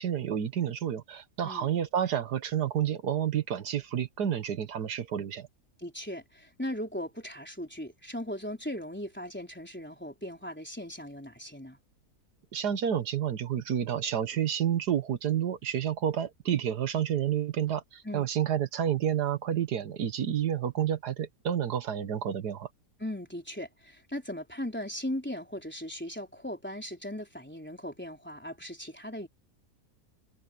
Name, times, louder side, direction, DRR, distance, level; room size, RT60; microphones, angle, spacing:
voice 1, 0.0-5.5 12.5-22.7, right 9 dB, 75° right, 1.7 m, -30 dB
voice 2, 5.8-11.8 18.0-18.3 23.0-29.3, left 1 dB, 5° left, 3.8 m, -38 dB
omnidirectional pair, 1.7 m